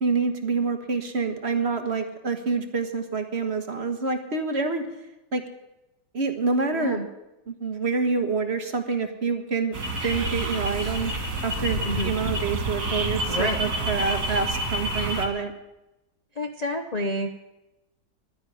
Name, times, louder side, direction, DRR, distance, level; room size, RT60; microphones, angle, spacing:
voice 1, 0.0-4.8 5.3-5.4 6.1-7.0 7.5-9.7 10.0-11.1 11.4-15.5, right 4 dB, 40° right, 6 dB, 1.4 m, -27 dB
voice 2, 6.7-7.1 11.8-12.1 13.3-13.6 16.4-17.3, left 1 dB, 65° left, 6 dB, 0.4 m, -28 dB
sound 1, 9.7-15.3, right 2 dB, 60° right, 2.8 m, -28 dB
11.5 x 9.6 x 9.9 m, 0.96 s
omnidirectional pair, 2.0 m